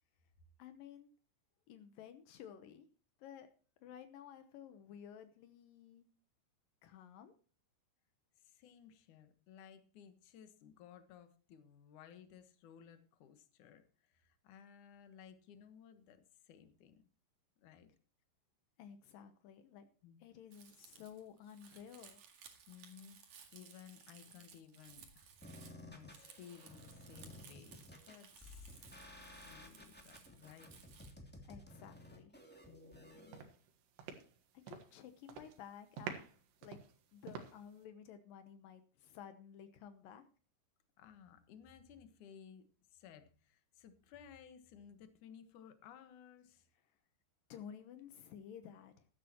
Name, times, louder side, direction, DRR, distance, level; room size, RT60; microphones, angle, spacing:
voice 1, 0.6-1.1 1.7-2.9 3.2-3.5 3.8-6.1 6.8-7.3 18.8-19.9 20.2-22.2 31.5-32.3 34.1-34.2 34.7-36.1 36.6-36.8 37.1-40.2 47.5-49.1, left 8 dB, 85° left, 9 dB, 1.9 m, -53 dB
voice 2, 8.4-17.1 17.6-17.9 20.0-20.2 22.7-25.3 25.8-28.7 29.5-30.7 32.7-33.5 41.0-46.7, left 8 dB, 65° left, 9 dB, 2.0 m, -58 dB
Crumpling crinkling, 20.5-31.1, right 7 dB, 55° right, 2.7 m, -60 dB
sound 1, 25.4-33.4, left 1 dB, 5° left, 0.9 m, -55 dB
sound 2, 32.8-33.0 33.3-35.0 35.2-35.6 36.0-37.8, right 7 dB, 70° right, 3.5 m, -48 dB
15.0 x 13.0 x 3.0 m, 0.38 s
omnidirectional pair, 5.5 m